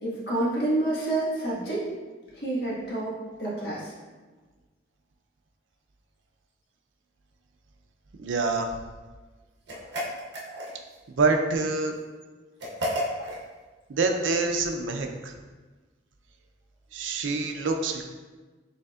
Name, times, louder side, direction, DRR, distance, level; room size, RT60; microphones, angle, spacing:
voice 1, 0.0-1.8 2.3-3.9 13.2-13.3, right 2 dB, 60° left, -7 dB, 1.4 m, -28 dB
voice 2, 8.2-8.7 11.2-11.9 13.9-15.3 16.9-18.1, right 3 dB, 85° right, 4 dB, 0.5 m, -26 dB
sound 1, 9.7-11.0 12.6-13.4, equal, 70° right, 1.0 m, -32 dB
5.2 x 3.4 x 2.4 m, 1.3 s
head